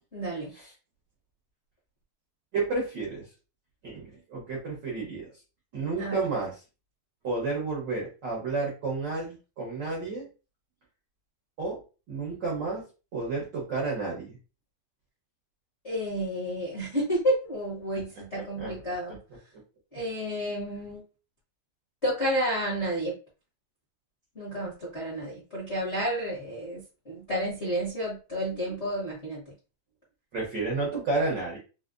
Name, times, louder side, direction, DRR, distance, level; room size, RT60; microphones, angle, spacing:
voice 1, 0.1-0.5 6.0-6.2 15.8-19.2 19.9-21.0 22.0-23.2 24.3-29.4, equal, 50° left, -7 dB, 0.8 m, -30 dB
voice 2, 2.5-3.2 3.8-5.3 5.7-6.5 7.2-10.3 11.6-11.8 12.1-14.4 18.3-18.8 19.1-19.2 30.3-31.6, right 3 dB, 85° right, -3 dB, 0.9 m, -31 dB
4.8 x 2.2 x 2.5 m, 0.33 s
omnidirectional pair, 3.4 m